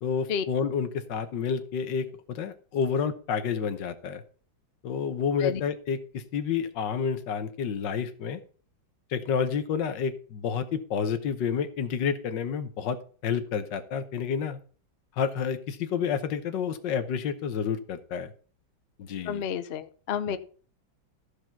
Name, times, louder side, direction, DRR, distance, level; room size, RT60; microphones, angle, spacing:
voice 1, 0.0-4.2 4.8-8.4 9.1-14.6 15.2-18.3 19.0-19.4 20.3-20.4, left 6 dB, 70° left, 10 dB, 1.5 m, -29 dB
voice 2, 19.3-20.4, left 7 dB, 85° left, 12 dB, 0.5 m, -30 dB
13.5 x 4.9 x 5.7 m, 0.42 s
omnidirectional pair, 2.1 m